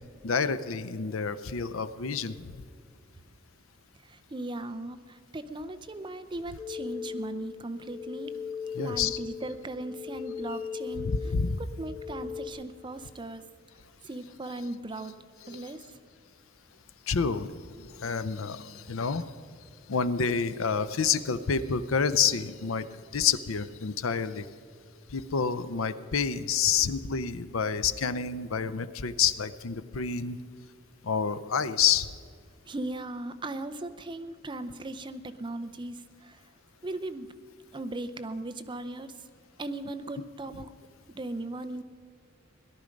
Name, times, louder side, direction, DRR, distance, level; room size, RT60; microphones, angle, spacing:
voice 1, 0.2-2.6 8.7-9.2 11.0-11.6 15.5-15.6 17.1-17.5 17.8-19.2 19.9-24.5 25.1-30.4 31.0-32.1, left 6 dB, 80° left, 13 dB, 0.6 m, -28 dB
voice 2, 4.0-8.3 8.8-13.4 14.0-15.1 15.5-16.0 32.7-36.4 36.8-37.3 37.7-39.3 39.6-40.7 41.1-41.8, right 2 dB, 25° right, 9 dB, 0.6 m, -38 dB
sound 1, 6.6-12.5, left 6 dB, ahead, 1.0 m, -38 dB
17.5 x 11.5 x 5.2 m, 2.2 s
head